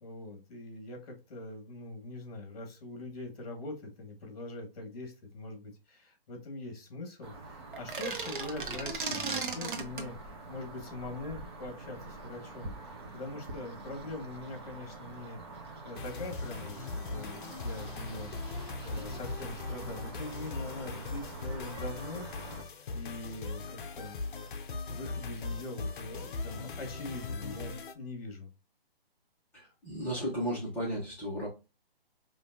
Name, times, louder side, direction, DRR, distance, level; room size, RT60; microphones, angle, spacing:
voice 1, 0.0-22.3 22.9-24.2 24.9-28.5, left 2 dB, 40° left, 3 dB, 1.7 m, -43 dB
sound 1, 7.2-22.6, right 2 dB, 25° right, 0.7 m, -46 dB
sound 2, 7.7-10.1, right 4 dB, 55° right, 1.0 m, -35 dB
sound 3, 15.9-27.9, left 3 dB, 55° left, 0.7 m, -39 dB
voice 2, 29.5-31.5, equal, 5° left, -8 dB, 1.1 m, -34 dB
5.2 x 2.6 x 2.6 m, 0.28 s
hypercardioid pair, 160°, 30 cm